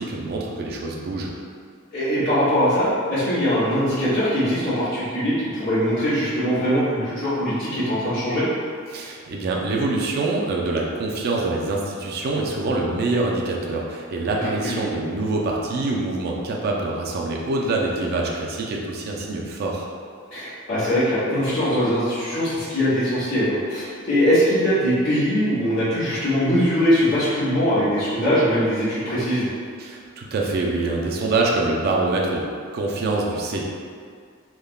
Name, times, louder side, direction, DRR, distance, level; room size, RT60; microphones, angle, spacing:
voice 1, 0.0-1.3 8.9-19.9 29.8-33.6, right 2 dB, 50° right, -1 dB, 0.3 m, -25 dB
voice 2, 1.9-8.4 14.6-14.8 20.3-29.5, equal, 70° left, -18 dB, 1.4 m, -21 dB
3.4 x 2.1 x 2.2 m, 2.1 s
head